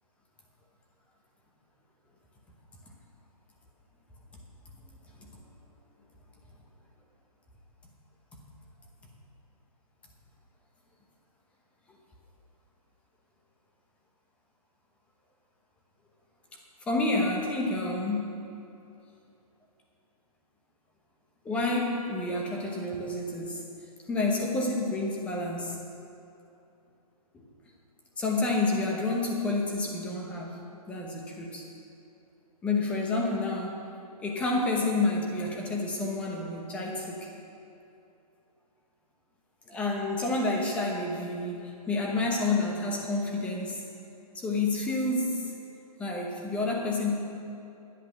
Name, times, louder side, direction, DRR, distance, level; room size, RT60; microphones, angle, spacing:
voice 1, 16.9-18.3 21.4-23.6 24.1-25.8 27.3-27.4 28.2-30.6 30.9-31.6 32.6-33.8 34.2-37.3 39.7-43.8 44.3-45.5 46.0-47.1, left 2 dB, 5° left, -1 dB, 0.9 m, -29 dB
10.5 x 10.0 x 5.8 m, 2.8 s
hypercardioid pair, 160°, 20 cm